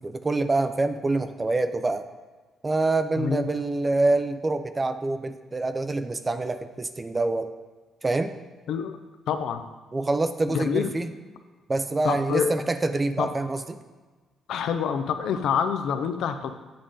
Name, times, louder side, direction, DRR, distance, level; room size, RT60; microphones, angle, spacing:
voice 1, 0.0-2.0 2.6-7.5 8.0-8.3 9.9-11.1 11.7-13.8, right 2 dB, 25° right, 10 dB, 0.4 m, -26 dB
voice 2, 8.7-9.0 9.3-9.6 10.5-10.9 12.0-12.6 13.2-13.3 14.5-16.6, left 7 dB, 80° left, 9 dB, 0.4 m, -26 dB
8.6 x 3.6 x 3.7 m, 1.3 s
cardioid pair, 90°, 0 cm